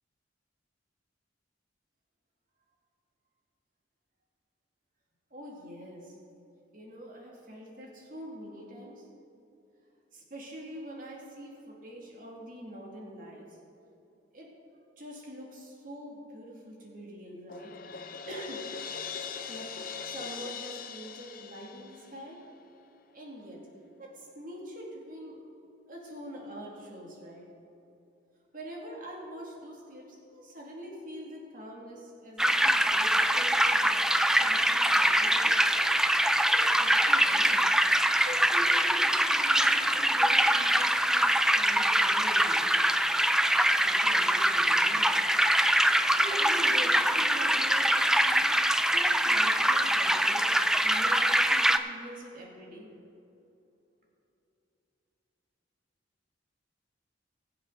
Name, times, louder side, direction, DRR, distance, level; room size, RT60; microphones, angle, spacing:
voice 1, 5.3-6.1 6.7-9.1 10.1-13.5 14.3-14.5 15.0-17.7 18.3-18.6 19.5-22.4 23.1-23.6 24.0-25.4 25.9-27.5 28.5-35.6 36.5-37.7 38.1-42.7 43.8-45.3 45.9-50.5 50.8-52.9, equal, 45° right, -2 dB, 2.4 m, -44 dB
Crash cymbal, 17.5-22.4, left 6 dB, 50° left, 0.6 m, -40 dB
sound 1, 32.4-51.8, right 1 dB, 5° right, 0.3 m, -24 dB
21.5 x 7.7 x 4.0 m, 2.8 s
head